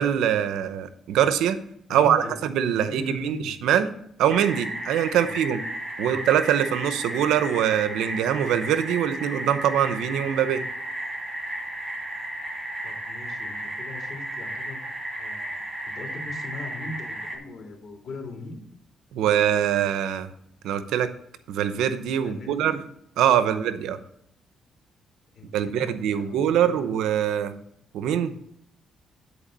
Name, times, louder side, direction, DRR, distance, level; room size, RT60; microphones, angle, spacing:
voice 1, 0.0-1.6 1.9-3.9 4.2-5.6 6.0-10.6 19.1-20.3 20.6-21.1 21.5-22.8 23.2-24.0 25.5-27.5 27.9-28.3, right 9 dB, 85° right, 12 dB, 0.7 m, -23 dB
voice 2, 1.9-2.4 2.7-3.5 5.1-5.3 6.0-6.2 12.8-14.8 15.2-18.6 22.2-22.7 23.4-23.6 25.3-26.9, left 2 dB, 55° left, 1 dB, 3.2 m, -40 dB
sound 1, 4.3-17.4, right 1 dB, 20° right, 2.5 m, -34 dB
10.0 x 4.6 x 6.7 m, 0.72 s
cardioid pair, 90°, 0 cm